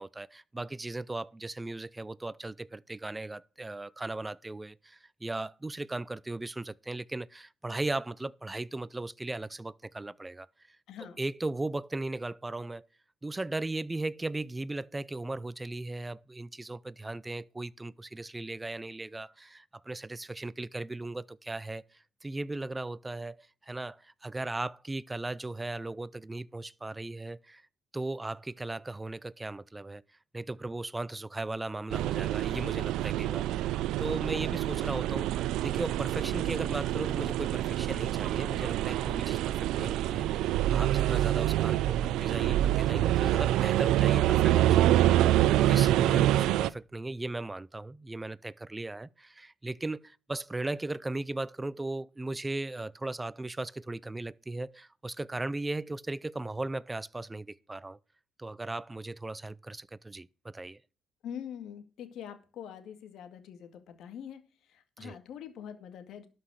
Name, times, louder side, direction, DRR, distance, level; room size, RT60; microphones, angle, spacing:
voice 1, 0.0-12.9 13.2-27.6 27.9-30.0 30.3-45.4 45.7-58.0 58.4-60.8 65.0-65.2, right 2 dB, 15° right, 0.5 m, -37 dB
voice 2, 10.9-11.2 61.2-64.4 64.7-66.3, left 9 dB, 65° left, 2.2 m, -44 dB
sound 1, 31.9-46.7, right 13 dB, 80° right, 0.5 m, -26 dB
12.5 x 5.8 x 6.4 m
cardioid pair, 115°, 0 cm